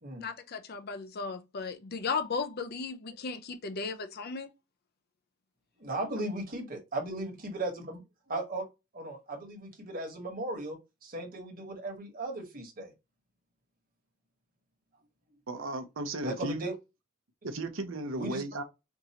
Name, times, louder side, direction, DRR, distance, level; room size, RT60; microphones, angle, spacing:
voice 1, 0.2-4.5, left 4 dB, 50° left, 0.5 m, -35 dB
voice 2, 5.8-8.0 8.3-8.7 8.9-12.9 16.2-16.7 18.2-18.4, right 1 dB, 40° right, 1.2 m, -36 dB
voice 3, 15.5-16.7 17.4-18.6, right 2 dB, 65° right, 0.7 m, -35 dB
4.5 x 2.5 x 2.8 m
head